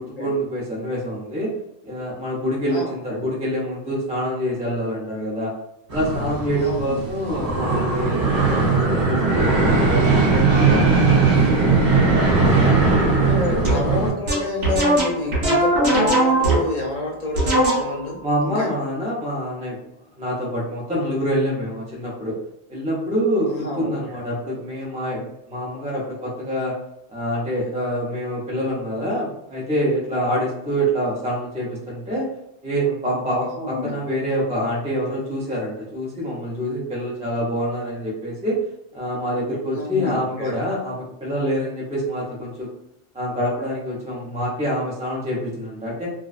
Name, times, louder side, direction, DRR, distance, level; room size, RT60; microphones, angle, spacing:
voice 1, 0.0-1.5 1.8-5.5 5.9-13.6 18.2-19.8 20.2-22.4 22.7-26.7 27.1-32.3 32.6-38.6 38.9-42.7 43.1-46.1, equal, 10° right, -6 dB, 0.4 m, -26 dB
sound 1, 5.9-14.1, right 4 dB, 40° right, 0.7 m, -19 dB
voice 2, 6.6-7.1 13.1-18.2 18.4-18.7 23.5-24.2 33.5-33.9 39.7-40.5, left 2 dB, 55° left, 0 dB, 0.5 m, -29 dB
sound 2, 13.6-13.9 14.3-16.9 17.3-18.1, right 1 dB, 85° right, 1.1 m, -19 dB
2.3 x 2.3 x 2.4 m, 0.79 s
omnidirectional pair, 1.1 m